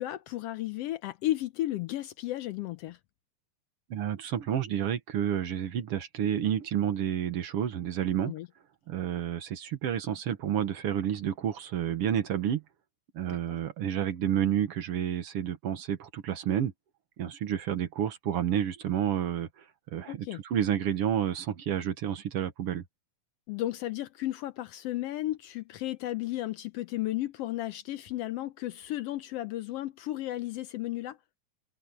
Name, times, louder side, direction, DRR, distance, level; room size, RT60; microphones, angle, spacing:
voice 1, 0.0-3.0 8.2-8.5 13.3-13.4 20.1-20.4 23.5-31.2, left 15 dB, 90° left, 1.3 m, -34 dB
voice 2, 3.9-8.3 8.9-12.6 13.2-16.7 17.2-19.5 19.9-22.8, right 9 dB, 60° right, 1.8 m, -30 dB
omnidirectional pair, 3.5 m